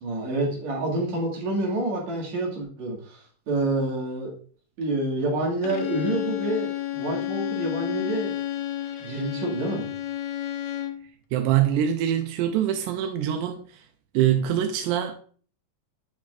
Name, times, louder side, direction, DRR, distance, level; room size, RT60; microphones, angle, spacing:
voice 1, 0.0-3.2 3.5-4.3 4.8-8.3 9.0-9.9, right 2 dB, 65° right, 3.1 m, -28 dB
Bowed string instrument, 5.6-11.1, left 12 dB, 75° left, 1.7 m, -31 dB
voice 2, 11.3-13.9 14.1-15.2, right 10 dB, 90° right, 2.1 m, -24 dB
8.6 x 5.8 x 2.5 m
omnidirectional pair, 3.5 m